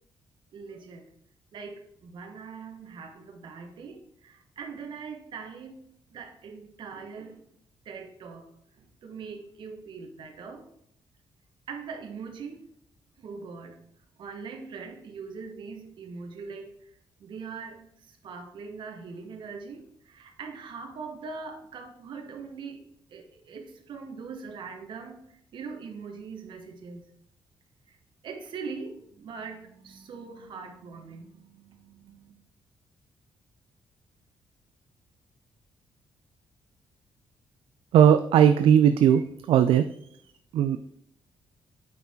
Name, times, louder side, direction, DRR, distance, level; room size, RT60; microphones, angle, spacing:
voice 1, 0.5-1.1 1.5-5.8 6.1-7.4 7.8-8.5 8.7-10.6 11.7-12.7 13.2-13.8 14.2-16.9 17.2-22.8 23.1-25.2 25.5-27.0 27.9-28.0 28.2-32.3, right 5 dB, 60° right, 4 dB, 1.3 m, -41 dB
voice 2, 37.9-39.9 40.1-40.2 40.5-40.8, right 9 dB, 80° right, 9 dB, 0.4 m, -19 dB
9.1 x 4.4 x 3.6 m, 0.71 s
cardioid pair, 145°, 9 cm